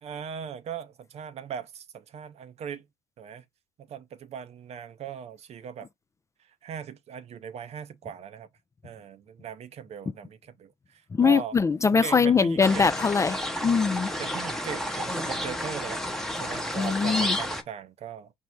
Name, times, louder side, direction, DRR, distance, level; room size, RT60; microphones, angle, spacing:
voice 1, 0.0-2.9 3.2-3.4 3.8-5.9 6.6-8.5 8.8-11.6 12.0-12.9 14.2-16.0 16.4-18.3, right 8 dB, 50° right, 0.6 m, -39 dB
voice 2, 11.1-14.1 16.7-17.4, left 5 dB, 20° left, 0.3 m, -22 dB
sound 1, 12.6-17.6, left 1 dB, 5° left, 0.8 m, -31 dB
4.4 x 2.0 x 4.5 m
hypercardioid pair, 60°, 14 cm